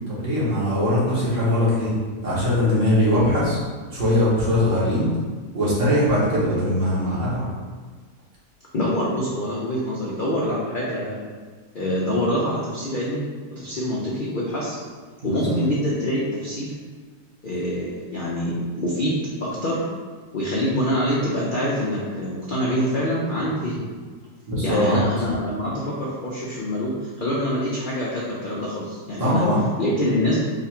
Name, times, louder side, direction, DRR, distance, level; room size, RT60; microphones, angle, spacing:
voice 1, 0.1-1.9 2.2-3.6 3.9-5.1 5.5-7.5 15.2-15.6 24.5-25.3 29.2-29.6, left 1 dB, 50° right, -8 dB, 1.6 m, -21 dB
voice 2, 8.7-11.2 11.7-13.2 13.6-14.8 15.2-16.7 17.4-19.8 20.3-23.9 24.6-29.4 29.8-30.4, equal, 65° left, -6 dB, 0.5 m, -25 dB
3.8 x 2.5 x 4.3 m, 1.5 s
omnidirectional pair, 1.7 m